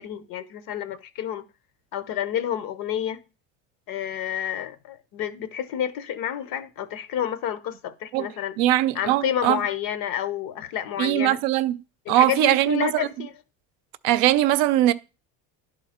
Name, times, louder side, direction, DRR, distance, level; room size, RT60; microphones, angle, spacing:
voice 1, 0.0-1.4 1.9-3.2 3.9-8.6 8.9-11.4 12.1-13.3, left 10 dB, 65° left, 0.9 m, -29 dB
voice 2, 8.6-9.6 11.0-11.8 12.1-13.1 14.0-14.9, right 15 dB, 70° right, 0.6 m, -21 dB
11.0 x 3.9 x 4.2 m
supercardioid pair, 105°, 37 cm